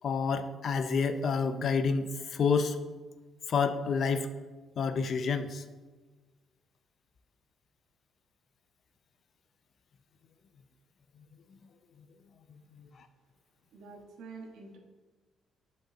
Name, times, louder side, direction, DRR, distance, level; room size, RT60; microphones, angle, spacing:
voice 1, 0.0-2.8 3.5-4.3 4.8-5.6, left 5 dB, 50° left, 10 dB, 0.5 m, -28 dB
voice 2, 13.7-14.8, right 4 dB, 80° right, 1 dB, 1.3 m, -47 dB
7.6 x 5.4 x 3.8 m, 1.3 s
cardioid pair, 115°, 0 cm